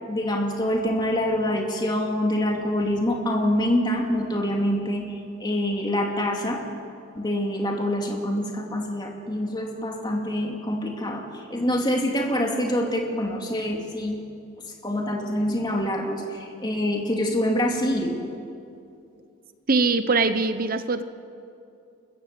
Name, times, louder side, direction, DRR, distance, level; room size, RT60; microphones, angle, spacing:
voice 1, 0.0-6.6 7.1-14.2 14.8-18.1, left 1 dB, 20° left, 1 dB, 2.5 m, -25 dB
voice 2, 19.7-21.0, right 3 dB, 40° right, 11 dB, 0.8 m, -22 dB
29.0 x 14.5 x 7.6 m, 2.6 s
head